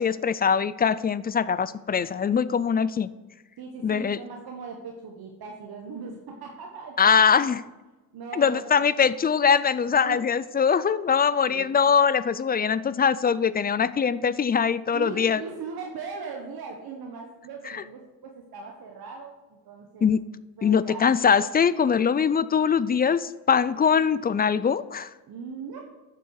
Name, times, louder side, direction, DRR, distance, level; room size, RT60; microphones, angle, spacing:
voice 1, 0.0-3.1 3.8-4.2 7.0-7.6 8.3-15.4 17.7-17.8 20.0-20.2 20.6-25.1, left 6 dB, 25° left, 17 dB, 0.4 m, -22 dB
voice 2, 3.6-7.1 8.1-8.8 10.0-10.2 11.5-11.9 14.9-20.1 20.6-21.1 25.3-25.8, right 5 dB, 80° right, 1 dB, 1.4 m, -39 dB
11.5 x 7.7 x 4.8 m, 1.1 s
cardioid pair, 120°, 36 cm